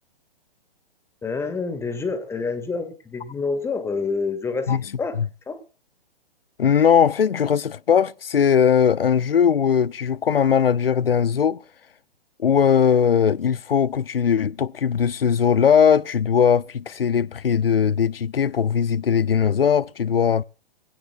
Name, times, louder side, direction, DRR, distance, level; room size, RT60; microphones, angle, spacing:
voice 1, 1.2-5.2 5.5-5.6, left 4 dB, 10° left, 1.8 m, -27 dB
voice 2, 6.6-11.6 12.4-20.4, left 7 dB, 75° left, 0.6 m, -19 dB
22.0 x 16.5 x 2.4 m
figure-of-eight pair, 120°, 29 cm